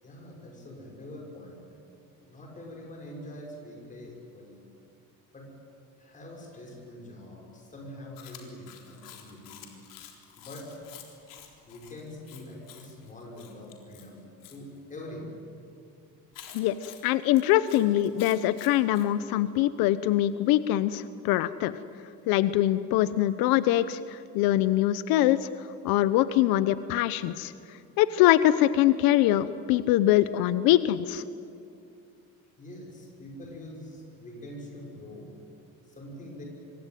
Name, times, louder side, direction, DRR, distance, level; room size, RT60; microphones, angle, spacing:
voice 1, 0.0-1.8 2.2-4.6 5.3-5.5 6.0-9.8 10.4-10.8 11.6-15.4 32.6-35.4 35.8-36.4, left 1 dB, 20° left, 0 dB, 6.3 m, -44 dB
Chewing mastication, 8.2-14.6 16.3-19.1, left 9 dB, 65° left, 4.0 m, -50 dB
voice 2, 17.0-21.8 22.3-25.5 25.8-27.5 28.0-31.2, left 13 dB, 90° left, 14 dB, 0.9 m, -23 dB
26.5 x 23.5 x 9.3 m, 2.5 s
cardioid pair, 170°, 35 cm